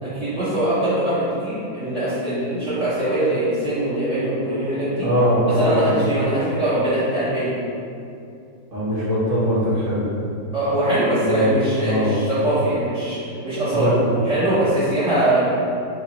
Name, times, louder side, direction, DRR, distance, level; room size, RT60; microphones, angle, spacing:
voice 1, 0.0-5.1 5.4-7.5 10.5-13.9 14.2-15.5, right 1 dB, 45° right, -13 dB, 1.2 m, -22 dB
voice 2, 5.0-6.0 8.7-10.1 11.2-11.5 11.8-12.1 13.7-14.1, equal, 25° right, -10 dB, 1.0 m, -21 dB
3.8 x 2.6 x 4.4 m, 2.5 s
omnidirectional pair, 2.1 m